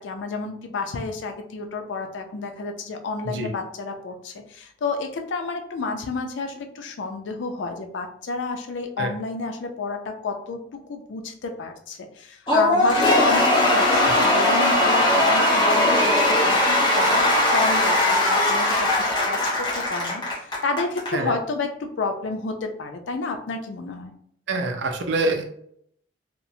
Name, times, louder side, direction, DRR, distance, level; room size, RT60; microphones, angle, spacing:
voice 1, 0.0-17.3 17.5-24.1, left 3 dB, 85° left, 5 dB, 0.4 m, -30 dB
Cheering / Applause / Crowd, 12.5-21.1, left 1 dB, 25° left, 0.7 m, -20 dB
voice 2, 24.5-25.4, right 2 dB, 75° right, 5 dB, 0.5 m, -25 dB
2.9 x 2.0 x 2.6 m, 0.68 s
head